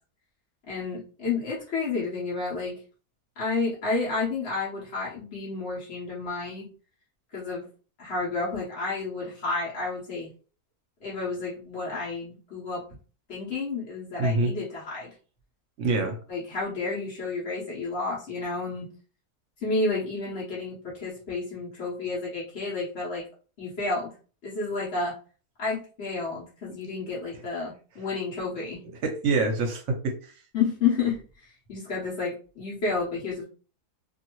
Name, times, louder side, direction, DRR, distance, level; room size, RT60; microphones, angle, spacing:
voice 1, 0.7-2.7 3.4-6.6 7.3-7.6 8.0-10.3 11.0-12.8 13.3-15.1 16.3-18.9 19.6-23.2 23.6-24.1 24.4-25.1 25.6-28.8 30.5-33.4, left 4 dB, 50° left, -8 dB, 1.3 m, -30 dB
voice 2, 14.2-14.5 15.8-16.2 28.8-30.3, right 3 dB, 60° right, 4 dB, 0.9 m, -26 dB
2.8 x 2.6 x 3.0 m, 0.38 s
omnidirectional pair, 1.6 m